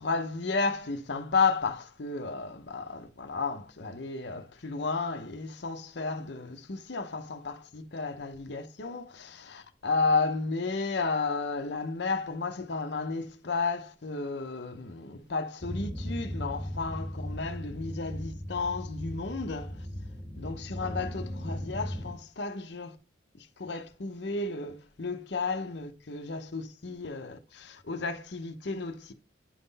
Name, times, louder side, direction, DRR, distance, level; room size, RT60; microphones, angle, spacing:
voice 1, 0.0-19.9 20.3-23.0 23.4-29.1, left 4 dB, 60° left, 0.8 m, -33 dB
sound 1, 15.6-22.1, equal, 25° right, 1.8 m, -37 dB
10.0 x 3.8 x 4.0 m
head